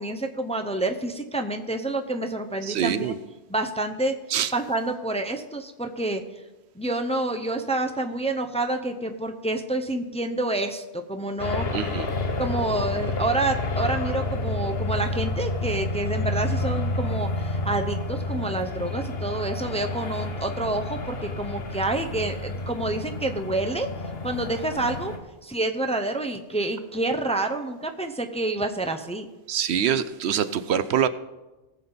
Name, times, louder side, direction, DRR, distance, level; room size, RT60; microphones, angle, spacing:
voice 1, 0.0-3.1 3.5-4.1 4.5-6.2 6.8-11.7 12.4-23.9 24.2-25.1 25.4-29.3, right 2 dB, 5° left, 0.6 m, -28 dB
voice 2, 2.6-3.2 4.3-4.5 11.7-12.1 29.5-31.1, right 9 dB, 75° right, 0.9 m, -24 dB
sound 1, 11.4-25.2, left 2 dB, 65° left, 1.2 m, -29 dB
19.0 x 7.3 x 4.0 m
omnidirectional pair, 1.1 m